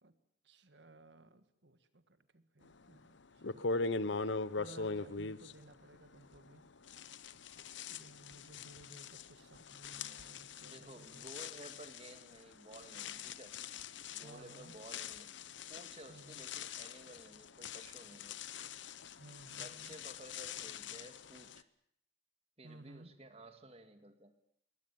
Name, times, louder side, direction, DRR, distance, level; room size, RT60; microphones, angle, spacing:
voice 1, 0.4-3.6 4.5-6.6 7.9-11.3 14.2-14.7 16.1-16.4 19.2-19.9 22.6-23.1, right 2 dB, 65° right, 11 dB, 1.7 m, -57 dB
sound 1, 2.9-3.0 3.4-6.6 6.9-21.6, left 4 dB, 70° left, 0.9 m, -42 dB
voice 2, 10.7-13.6 14.1-15.3 15.7-18.4 19.5-21.7 22.6-24.3, right 1 dB, 30° right, 8 dB, 2.1 m, -54 dB
23.5 x 18.0 x 8.6 m, 0.70 s
head